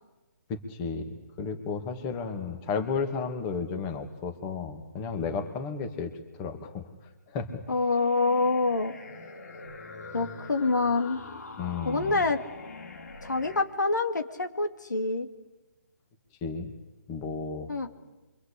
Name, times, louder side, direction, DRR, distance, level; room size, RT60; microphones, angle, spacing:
voice 1, 0.5-6.1 6.4-6.9 7.3-7.6 11.6-12.2 16.4-16.7 17.1-17.7, left 5 dB, 20° left, 7 dB, 2.4 m, -33 dB
voice 2, 7.7-8.9 10.1-11.2 11.8-12.4 13.2-15.3 17.7-17.9, left 3 dB, 85° left, 6 dB, 2.7 m, -26 dB
sound 1, 7.7-13.6, left 3 dB, 65° left, 3.3 m, -43 dB
28.0 x 24.5 x 8.6 m, 1.1 s
hypercardioid pair, 155°, 9 cm